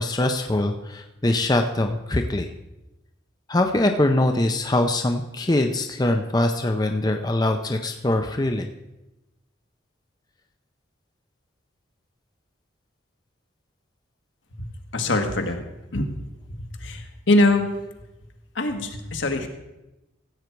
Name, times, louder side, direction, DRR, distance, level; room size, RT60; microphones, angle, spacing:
voice 1, 0.0-2.5 3.5-8.7, left 1 dB, 20° left, 5 dB, 0.5 m, -23 dB
voice 2, 14.9-15.6 15.9-16.1 16.8-17.7 18.5-19.5, left 2 dB, 75° left, 5 dB, 1.4 m, -22 dB
15.0 x 8.0 x 4.6 m, 0.97 s
head